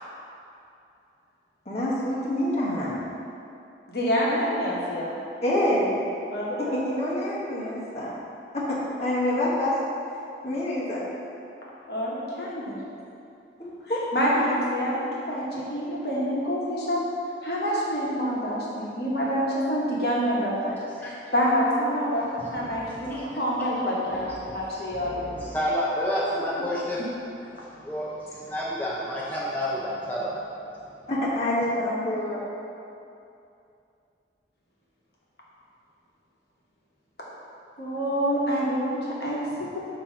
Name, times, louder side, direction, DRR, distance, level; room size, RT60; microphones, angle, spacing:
voice 1, 1.6-3.0 5.4-6.0 6.6-8.2 8.5-9.7 10.4-11.0 13.6-14.0 26.3-26.6 31.1-32.4, left 1 dB, 35° left, -7 dB, 1.2 m, -27 dB
voice 2, 3.9-5.2 6.3-6.8 11.9-12.8 13.9-17.0 17.4-20.7 21.0-22.3 22.5-25.3 31.6-31.9 37.8-39.8, equal, 60° left, -6 dB, 1.2 m, -27 dB
voice 3, 22.4-23.4 24.1-27.0 27.8-30.4, equal, 10° left, -7 dB, 0.5 m, -30 dB
6.9 x 2.9 x 5.2 m, 2.6 s
head